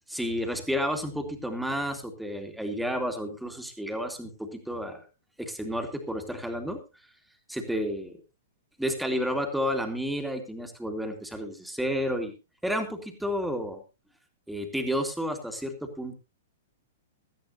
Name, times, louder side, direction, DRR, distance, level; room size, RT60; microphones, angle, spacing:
voice 1, 0.1-5.0 5.4-6.8 7.5-8.2 8.8-12.3 12.6-13.8 14.5-16.1, equal, ahead, 5 dB, 2.4 m, -31 dB
17.0 x 13.5 x 2.9 m, 0.28 s
figure-of-eight pair, 105°, 0 cm